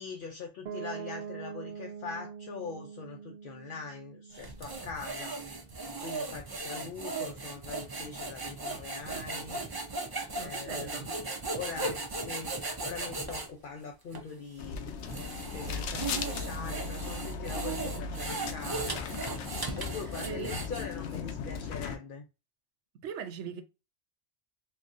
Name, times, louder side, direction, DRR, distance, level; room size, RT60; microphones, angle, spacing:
voice 1, 0.0-5.4 6.0-9.6 10.3-12.6 12.8-14.9 15.5-19.1 19.8-22.2, left 5 dB, 55° left, 0.7 m, -42 dB
Piano, 0.7-6.4, right 7 dB, 60° right, 0.8 m, -44 dB
sound 1, 4.3-13.5 14.1-14.2 14.9-21.1, right 3 dB, 30° right, 0.4 m, -37 dB
voice 2, 10.3-11.1 19.9-20.6 23.0-23.6, right 7 dB, 85° right, 0.9 m, -40 dB
sound 2, 14.6-22.0, left 5 dB, 80° left, 0.9 m, -37 dB
3.6 x 2.9 x 2.5 m
omnidirectional pair, 1.2 m